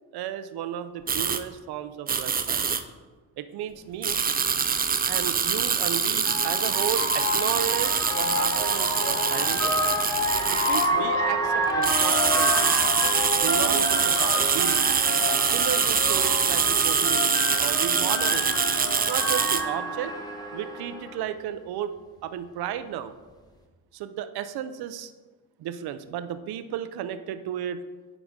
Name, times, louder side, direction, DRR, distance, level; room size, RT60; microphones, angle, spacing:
voice 1, 0.1-2.6 3.4-4.2 5.1-9.7 10.5-12.7 13.4-14.8 15.4-17.3 17.6-18.5 19.0-20.1 20.5-21.9 22.2-23.1 23.9-25.1 25.6-27.8, right 10 dB, 60° right, 11 dB, 0.6 m, -33 dB
sound 1, 1.1-1.4 2.1-2.8 4.0-10.9 11.6-19.6, right 6 dB, 20° right, 0.5 m, -24 dB
sound 2, 4.1-4.2 5.6-21.2, left 1 dB, 10° left, 1.2 m, -28 dB
9.9 x 3.9 x 3.7 m, 1.3 s
supercardioid pair, 75°, 42 cm